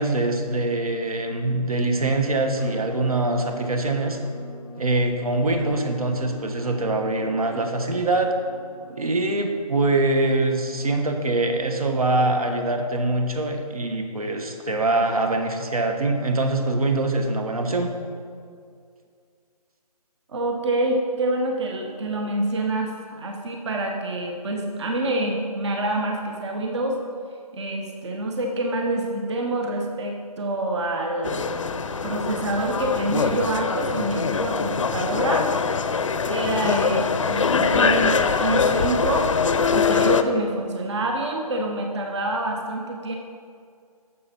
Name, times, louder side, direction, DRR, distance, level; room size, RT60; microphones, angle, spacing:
voice 1, 0.0-4.2 4.8-8.3 9.0-17.9, right 2 dB, 65° right, 5 dB, 1.3 m, -23 dB
Musical instrument, 2.6-12.4, left 1 dB, 5° right, 0.6 m, -43 dB
voice 2, 20.3-27.0 27.5-31.4 32.0-35.5 36.3-39.3 39.7-43.2, right 2 dB, 45° right, 2 dB, 1.1 m, -26 dB
sound 1, 31.2-40.2, left 5 dB, 55° left, 0.6 m, -23 dB
11.5 x 7.1 x 4.3 m, 2.2 s
figure-of-eight pair, 150°, 20 cm